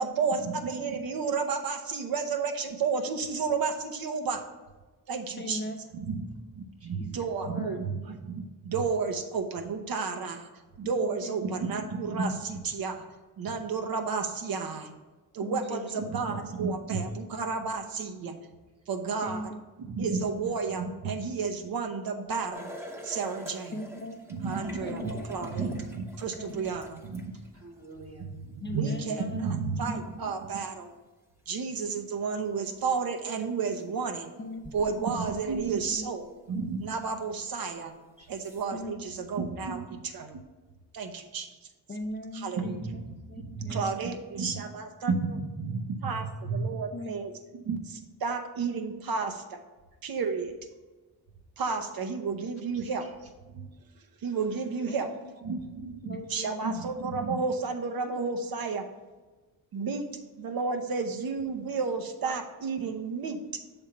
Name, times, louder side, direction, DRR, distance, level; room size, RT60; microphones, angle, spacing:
voice 1, 0.0-4.4 5.1-5.6 5.9-10.5 10.8-13.0 13.4-14.9 15.3-18.3 18.9-19.5 19.9-22.7 23.0-23.8 24.3-27.3 28.3-30.9 31.5-34.3 34.7-37.9 38.3-40.4 40.9-41.5 42.3-49.6 50.0-50.5 51.6-53.0 53.5-53.7 54.2-55.1 55.4-58.9 59.7-60.1 60.4-63.6, right 5 dB, 70° right, 6 dB, 0.9 m, -31 dB
voice 2, 5.4-6.0 7.0-7.1 7.4-7.8 11.0-11.8 15.4-16.4 19.2-20.0 20.2-20.4 23.7-24.4 24.8-25.4 26.4-26.6 28.6-29.5 34.4-34.6 34.9-35.1 35.8-36.1 38.7-39.1 41.9-44.0 46.9-47.2 54.9-55.0 56.0-56.7, left 1 dB, 30° left, 2 dB, 0.6 m, -40 dB
voice 3, 6.8-7.1 8.0-8.1 16.3-16.4 17.0-17.1 27.3-28.3 28.8-29.1 36.5-36.6 38.2-38.3 52.7-53.3, right 2 dB, 40° right, 1 dB, 1.2 m, -51 dB
sound 1, 22.5-27.8 29.8-29.9 32.8-32.9 33.6-33.9 34.6-36.3 36.7-36.8 37.7-37.8 38.3-38.6, equal, 5° right, 0.8 m, -45 dB
7.1 x 3.5 x 5.6 m, 1.2 s
cardioid pair, 115°, 37 cm